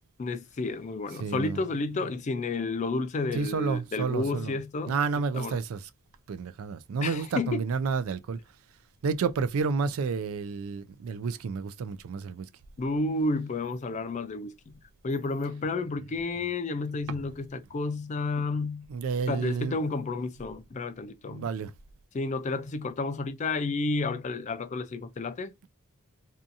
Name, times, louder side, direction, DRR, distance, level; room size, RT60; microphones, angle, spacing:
voice 1, 0.2-5.0 5.3-5.6 7.0-7.6 12.8-14.7 15.0-18.9 19.3-21.5 22.1-25.5, left 3 dB, 35° left, 0.4 m, -31 dB
voice 2, 1.2-1.6 3.3-4.6 4.9-5.9 6.3-8.4 9.0-12.5 17.1-17.2 18.9-19.8 21.3-21.7, right 5 dB, 75° right, 0.3 m, -30 dB
2.7 x 2.4 x 2.5 m
head